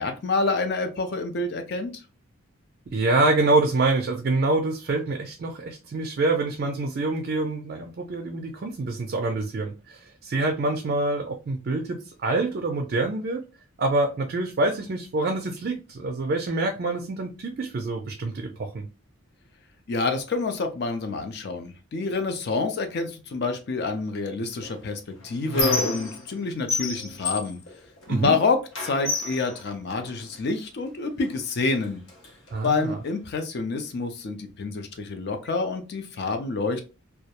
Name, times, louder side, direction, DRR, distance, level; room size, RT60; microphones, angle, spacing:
voice 1, 0.0-1.9 19.9-27.6 28.1-32.0 32.6-36.8, left 3 dB, 50° left, 7 dB, 0.4 m, -27 dB
voice 2, 2.9-13.4 13.8-18.9 28.1-28.3 32.5-33.0, right 2 dB, 45° right, 3 dB, 0.3 m, -26 dB
Squeak, 24.6-26.4 26.7-28.3 28.7-30.4 31.2-31.3 31.7-32.7, left 3 dB, 75° left, 0.7 m, -31 dB
2.2 x 2.0 x 2.8 m, 0.32 s
head